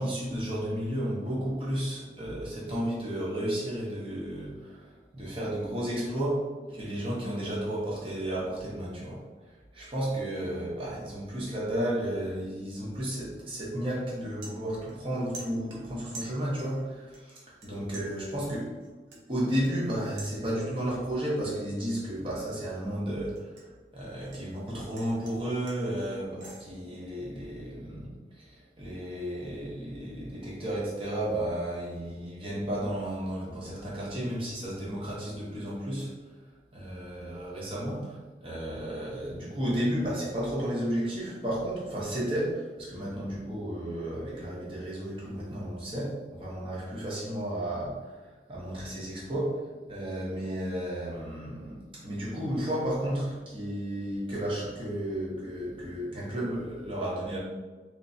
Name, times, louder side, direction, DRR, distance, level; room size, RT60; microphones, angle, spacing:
voice 1, 0.0-9.2 9.7-18.7 19.1-23.5 23.9-36.1 36.7-49.6 49.9-57.4, right 1 dB, 30° right, -6 dB, 0.8 m, -33 dB
sound 1, 14.4-15.1 15.3-16.8 17.1-17.7 17.9-20.9 21.2-21.6 22.0-24.4 24.7-26.6, right 2 dB, 90° right, 0.8 m, -48 dB
3.2 x 3.1 x 2.7 m, 1.3 s
head